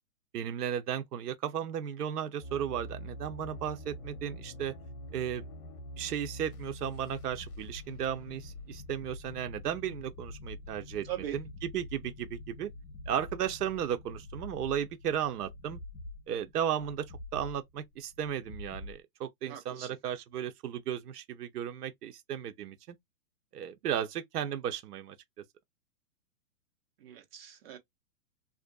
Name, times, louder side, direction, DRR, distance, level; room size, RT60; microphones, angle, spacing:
voice 1, 0.3-4.7 5.1-5.5 6.0-12.7 13.1-15.8 16.3-17.0 17.3-23.0 23.5-25.2, right 9 dB, 85° right, 0.7 m, -35 dB
sound 1, 2.4-19.0, left 1 dB, 70° left, 0.9 m, -46 dB
voice 2, 11.0-11.4 19.5-19.9 27.0-27.8, right 12 dB, 40° right, 0.7 m, -40 dB
2.6 x 2.5 x 2.2 m
hypercardioid pair, 155°, 46 cm